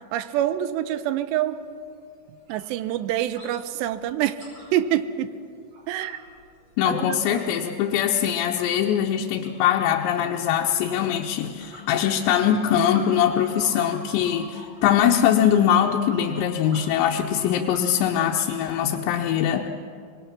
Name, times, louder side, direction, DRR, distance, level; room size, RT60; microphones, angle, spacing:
voice 1, 0.0-1.6 2.5-4.4 4.7-5.3 5.9-6.2 6.9-7.4, right 12 dB, 85° right, 13 dB, 2.9 m, -26 dB
sound 1, 1.3-1.4 1.7-1.9 2.2-3.6 3.8-7.6 7.9-18.7, right 1 dB, 40° right, 6.3 m, -47 dB
voice 2, 6.8-19.7, left 9 dB, 90° left, 1 dB, 3.1 m, -22 dB
24.5 x 20.0 x 5.9 m, 2.3 s
omnidirectional pair, 5.0 m